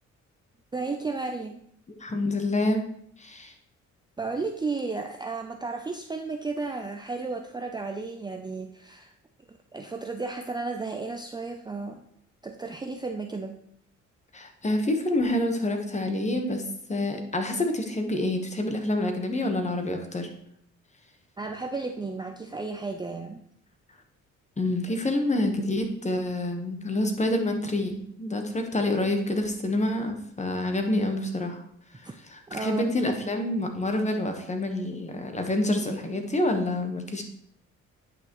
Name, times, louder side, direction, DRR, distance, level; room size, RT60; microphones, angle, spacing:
voice 1, 0.7-1.6 4.2-9.1 9.7-12.0 12.4-13.6 21.4-23.4 32.0-32.1 32.5-32.9, right 3 dB, 15° right, 4 dB, 0.5 m, -33 dB
voice 2, 2.0-2.9 3.2-3.5 14.3-20.3 24.6-31.6 32.3-37.2, left 1 dB, 25° left, 5 dB, 1.3 m, -27 dB
9.1 x 5.7 x 3.1 m, 0.70 s
cardioid pair, 90°, 30 cm